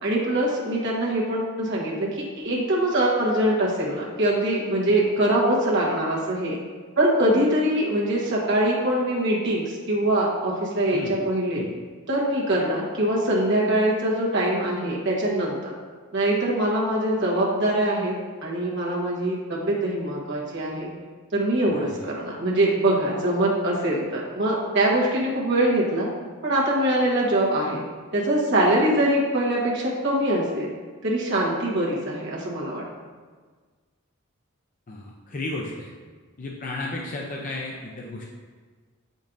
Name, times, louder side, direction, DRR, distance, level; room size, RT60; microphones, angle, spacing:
voice 1, 0.0-6.6 7.0-11.6 12.1-15.7 16.1-18.1 18.4-20.9 21.3-26.1 26.4-27.8 28.1-30.7 31.0-32.8, right 1 dB, 55° right, -4 dB, 1.3 m, -23 dB
voice 2, 34.9-35.9 36.4-38.2, left 2 dB, 40° left, -2 dB, 0.5 m, -33 dB
7.3 x 5.2 x 2.6 m, 1.5 s
head